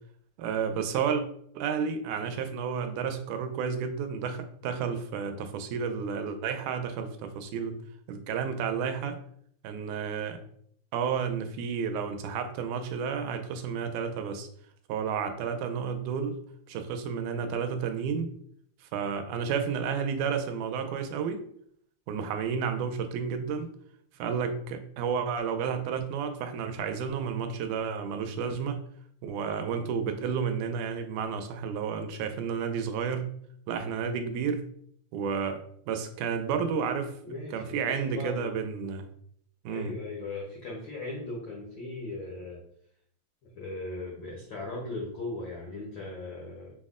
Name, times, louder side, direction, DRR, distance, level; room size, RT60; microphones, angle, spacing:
voice 1, 0.4-1.2 1.6-7.8 8.1-9.2 9.6-10.4 10.9-14.5 14.9-16.4 16.7-18.3 18.9-21.4 22.1-23.7 24.2-28.8 29.2-33.3 33.7-34.6 35.1-35.6 35.9-37.2 37.5-39.1 39.7-39.9, right 6 dB, 85° right, 6 dB, 2.0 m, -31 dB
voice 2, 37.2-38.5 39.7-42.6 43.4-46.7, left 2 dB, 80° left, -3 dB, 1.0 m, -38 dB
5.8 x 2.1 x 3.6 m, 0.64 s
omnidirectional pair, 3.4 m